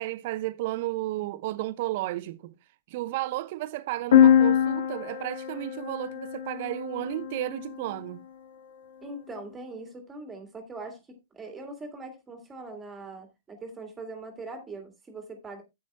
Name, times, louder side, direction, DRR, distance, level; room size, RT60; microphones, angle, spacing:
voice 1, 0.0-2.5 2.9-8.2, right 17 dB, 45° right, 0.9 m, -33 dB
sound 1, 4.1-7.9, left 9 dB, 65° left, 1.4 m, -23 dB
voice 2, 9.0-11.0 11.3-15.6, right 3 dB, 15° right, 1.8 m, -41 dB
12.5 x 8.5 x 2.3 m
figure-of-eight pair, 110°, 0 cm